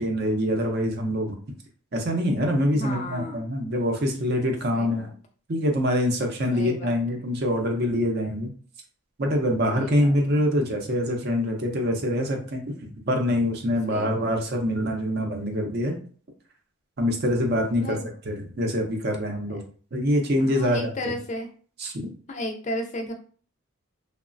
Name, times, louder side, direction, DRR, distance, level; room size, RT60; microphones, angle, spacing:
voice 1, 0.0-1.4 1.9-5.1 5.5-8.5 9.2-12.6 13.1-16.0 17.0-18.0 18.2-19.6 19.9-21.1 21.8-22.1, equal, 45° right, 3 dB, 0.5 m, -25 dB
voice 2, 2.7-3.4 4.7-5.1 6.5-7.2 9.7-10.4 13.9-14.3 17.8-18.1 20.4-21.5 22.3-23.1, left 1 dB, 30° left, 4 dB, 0.3 m, -34 dB
3.0 x 2.1 x 2.5 m, 0.42 s
head